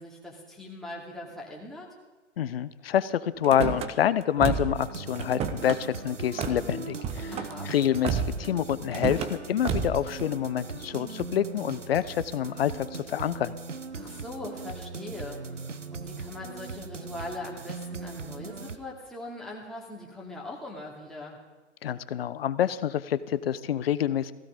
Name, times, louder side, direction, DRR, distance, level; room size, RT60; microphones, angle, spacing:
voice 1, 0.0-1.9 7.3-7.7 13.9-21.4, left 2 dB, ahead, -4 dB, 2.6 m, -41 dB
voice 2, 2.4-7.3 7.7-13.5 21.8-24.3, left 10 dB, 55° left, 16 dB, 0.9 m, -27 dB
Car / Slam, 3.4-3.9 4.4-4.8 5.1-5.8 6.4-6.6 7.0-7.5 8.0-8.5 8.9-9.3 9.6-10.0, right 6 dB, 15° right, 0.9 m, -30 dB
sound 1, 4.7-18.8, right 4 dB, 85° right, 1.0 m, -39 dB
17.5 x 15.5 x 5.2 m, 1.1 s
figure-of-eight pair, 115°, 36 cm